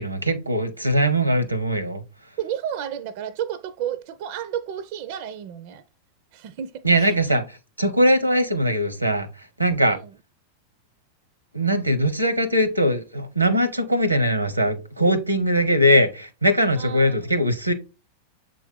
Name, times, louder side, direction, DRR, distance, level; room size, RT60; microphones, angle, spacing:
voice 1, 0.0-2.0 6.8-7.4 7.8-10.0 11.5-17.7, equal, 85° right, 0.8 m, -21 dB
voice 2, 2.4-5.8 6.3-7.4 9.9-10.1 16.8-17.2, right 9 dB, 50° right, 0.4 m, -32 dB
7.2 x 3.8 x 3.5 m
figure-of-eight pair, 90°, 0 cm